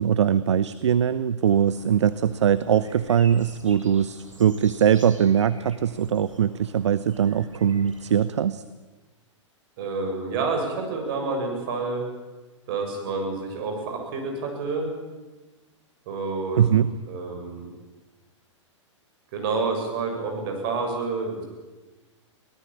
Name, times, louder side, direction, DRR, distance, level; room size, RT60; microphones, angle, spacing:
voice 1, 0.0-8.6 16.6-16.9, right 8 dB, 65° right, 16 dB, 0.8 m, -21 dB
sound 1, 1.4-8.2, right 2 dB, 85° right, 3.6 m, -47 dB
voice 2, 9.8-12.1 12.7-14.9 16.1-16.8 17.1-17.7 19.3-21.4, right 4 dB, 45° right, 2 dB, 7.3 m, -29 dB
23.5 x 18.0 x 8.8 m, 1.2 s
figure-of-eight pair, 105°, 16 cm